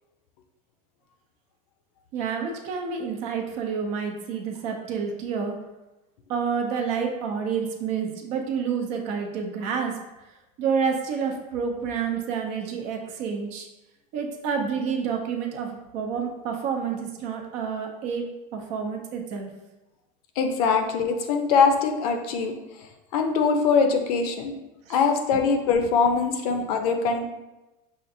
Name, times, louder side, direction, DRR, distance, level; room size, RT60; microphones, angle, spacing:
voice 1, 2.1-5.6 6.3-10.0 10.6-13.7 14.1-18.3 18.5-19.5 24.9-25.0, right 6 dB, 35° right, 3 dB, 0.5 m, -29 dB
voice 2, 20.4-22.5 23.1-24.5 24.9-27.3, left 5 dB, 70° left, 5 dB, 0.6 m, -22 dB
5.6 x 2.5 x 2.6 m, 1.0 s
supercardioid pair, 175°, 20 cm